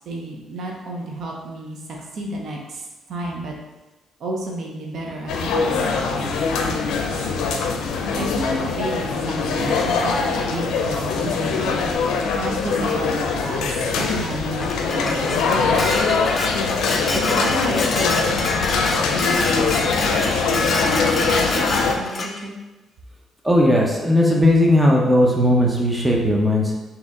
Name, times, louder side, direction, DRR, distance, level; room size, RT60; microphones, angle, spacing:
voice 1, 0.0-3.5 4.2-7.3 8.1-11.9 12.4-16.4 17.1-22.6, right 1 dB, 65° right, -1 dB, 0.7 m, -32 dB
sound 1, 5.3-21.9, left 4 dB, 85° left, 0.4 m, -22 dB
Dishes pots and pans, 14.6-22.3, left 2 dB, 40° left, 0.5 m, -26 dB
voice 2, 23.4-26.7, left 1 dB, 15° right, -1 dB, 0.7 m, -17 dB
4.0 x 2.8 x 3.6 m, 1.1 s
cardioid pair, 90°, 0 cm